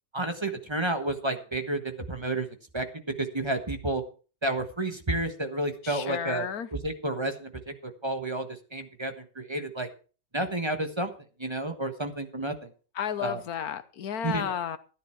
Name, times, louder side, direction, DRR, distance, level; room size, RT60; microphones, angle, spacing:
voice 1, 0.1-2.5 2.7-4.0 4.4-9.9 10.3-11.1 11.4-12.7 13.2-13.4 14.2-14.6, right 2 dB, 15° right, 7 dB, 1.2 m, -31 dB
voice 2, 5.8-6.7 12.9-14.8, left 9 dB, 60° left, 13 dB, 1.3 m, -32 dB
13.5 x 10.5 x 4.6 m, 0.36 s
omnidirectional pair, 2.0 m